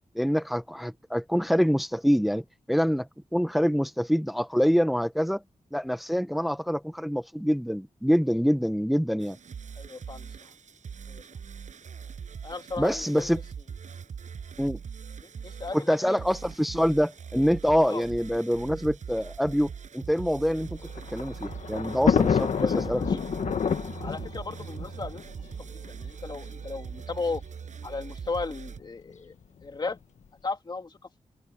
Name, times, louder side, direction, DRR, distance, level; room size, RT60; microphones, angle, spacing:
voice 1, 0.1-5.4 5.7-9.4 12.8-13.4 14.6-14.8 15.7-20.8 21.1-23.2, equal, ahead, 0.8 m, -25 dB
sound 1, 9.2-28.8, right 6 dB, 85° right, 7.6 m, -41 dB
voice 2, 9.8-10.3 11.1-11.2 12.4-13.3 15.2-16.2 17.8-18.0 22.5-23.2 24.0-25.4 25.9-27.4 27.8-29.3 29.6-30.0 30.4-31.0, left 3 dB, 35° left, 2.6 m, -35 dB
Thunder, 20.6-25.9 26.8-26.9 27.1-27.2 28.3-28.6, left 6 dB, 80° left, 1.3 m, -28 dB
wide cardioid pair, 155°, 12 cm